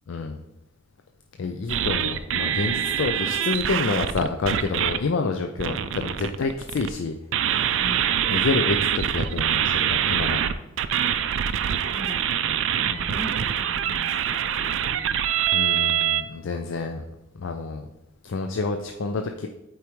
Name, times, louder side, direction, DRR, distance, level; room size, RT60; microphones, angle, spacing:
voice 1, 0.1-0.4 1.4-7.1 7.4-7.8 8.3-10.4 12.9-13.0 15.5-17.0 17.4-17.9 18.2-19.5, left 4 dB, 65° left, 5 dB, 0.4 m, -28 dB
sound 1, 1.7-5.0 5.6-6.9 7.3-16.2, right 9 dB, 65° right, 0.4 m, -24 dB
voice 2, 5.6-6.4 7.8-8.3 11.8-15.1, equal, 50° left, 3 dB, 1.1 m, -41 dB
8.4 x 4.7 x 3.1 m, 0.91 s
head